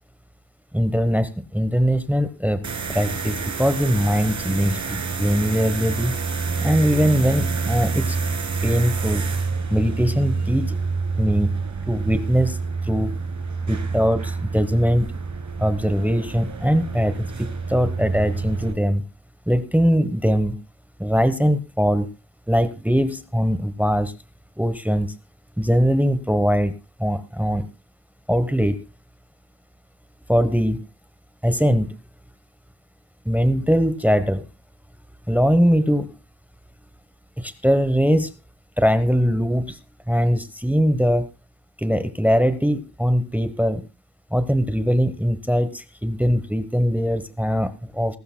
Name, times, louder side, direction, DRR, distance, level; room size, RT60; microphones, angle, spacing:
voice 1, 0.7-2.6 2.9-6.1 6.6-8.2 8.6-9.2 9.7-10.8 11.2-11.5 11.9-12.6 12.8-13.2 13.7-15.1 15.6-19.0 19.5-20.5 21.0-22.1 22.5-24.1 24.6-25.1 25.6-26.7 27.0-27.6 28.3-28.8 30.3-30.8 31.4-31.9 33.2-34.4 35.3-36.1 37.4-38.3 38.8-39.8 40.1-41.3 41.8-43.8 44.3-48.2, equal, 5° right, 11 dB, 1.0 m, -21 dB
sound 1, 2.6-18.7, right 4 dB, 45° right, 1.7 m, -27 dB
20.5 x 12.0 x 2.2 m, 0.27 s
wide cardioid pair, 135°, 40 cm